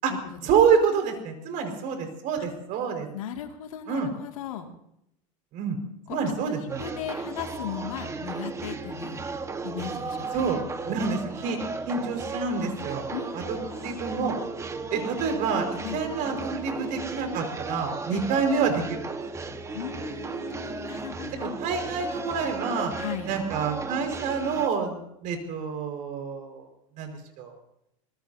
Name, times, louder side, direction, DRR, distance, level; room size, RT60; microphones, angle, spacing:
voice 1, 0.4-3.1 3.9-4.1 5.5-5.8 6.1-6.8 10.3-14.3 14.9-19.1 21.4-22.9 23.3-26.7 27.0-27.1 27.4-27.5, right 5 dB, 50° right, 5 dB, 5.1 m, -27 dB
voice 2, 3.1-4.7 6.1-6.3 6.6-9.3 9.6-10.5 13.1-13.9 15.8-16.0 18.1-18.3 19.7-21.6 23.0-23.3, left 9 dB, 85° left, 4 dB, 2.4 m, -37 dB
sound 1, 6.7-24.7, right 4 dB, 15° right, 1.4 m, -35 dB
25.0 x 19.5 x 2.8 m, 0.79 s
supercardioid pair, 120°, 17 cm